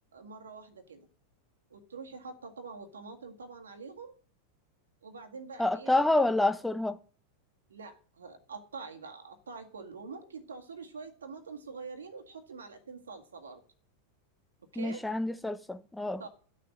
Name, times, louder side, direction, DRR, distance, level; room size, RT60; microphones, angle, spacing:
voice 1, 0.1-1.1 1.7-4.1 5.0-5.9 7.7-13.6 14.7-15.1 16.2-16.3, right 4 dB, 70° right, 1.8 m, -45 dB
voice 2, 5.6-7.0 14.8-16.2, left 2 dB, 5° left, 0.9 m, -28 dB
11.5 x 6.7 x 7.5 m
figure-of-eight pair, 90°, 0 cm